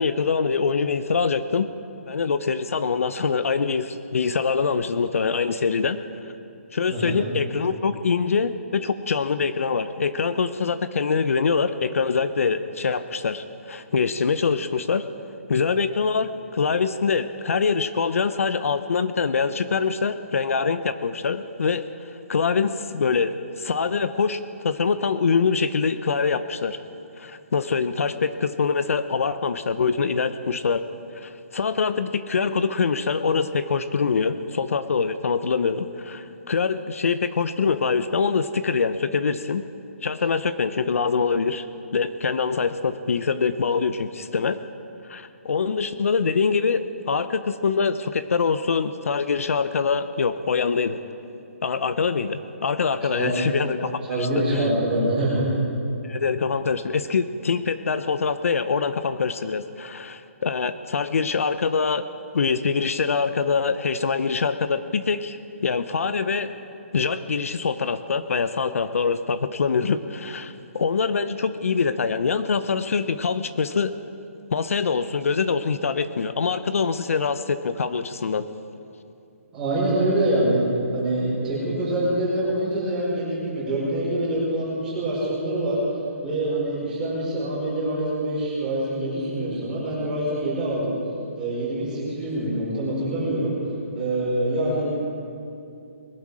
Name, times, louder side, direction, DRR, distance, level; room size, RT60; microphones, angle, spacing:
voice 1, 0.0-1.7 2.1-6.0 6.7-15.1 15.5-26.8 27.2-30.8 31.1-39.6 40.0-41.6 41.9-44.6 45.0-51.0 51.6-54.7 56.0-62.1 62.3-65.4 65.6-66.5 66.9-73.9 74.5-78.4, left 5 dB, 70° left, 12 dB, 0.7 m, -24 dB
voice 2, 54.1-55.6 79.5-80.6 80.9-85.8 86.2-90.9 91.4-93.5 93.9-95.0, right 1 dB, 10° right, -8 dB, 4.8 m, -25 dB
21.0 x 11.5 x 4.9 m, 2.6 s
hypercardioid pair, 170°, 8 cm